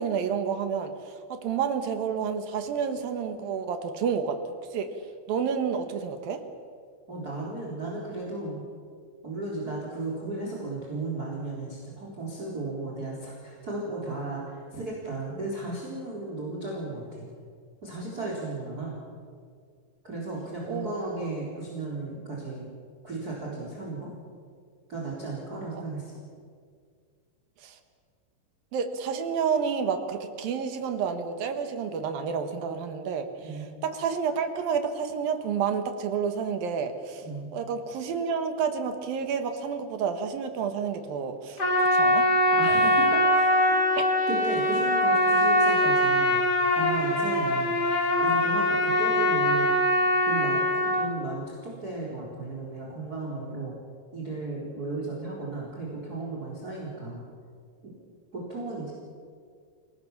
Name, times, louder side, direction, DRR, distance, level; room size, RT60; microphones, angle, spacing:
voice 1, 0.0-4.4 4.7-4.9 5.3-6.4 20.7-20.9 27.6-27.8 28.7-37.3 37.5-41.6 41.9-42.3 44.0-44.1, right 6 dB, 65° right, 8 dB, 2.7 m, -30 dB
voice 2, 7.1-8.6 9.2-17.3 17.8-19.0 20.0-22.7 23.0-24.1 24.9-26.1 33.4-33.7 37.2-37.5 42.5-46.4 46.7-47.8 48.2-49.8 50.2-53.8 54.1-57.3 57.8-57.9 58.3-58.9, right 2 dB, 20° right, -3 dB, 4.0 m, -35 dB
Trumpet, 41.6-51.1, equal, 35° left, 1.7 m, -22 dB
28.5 x 18.5 x 7.2 m, 2.1 s
omnidirectional pair, 5.3 m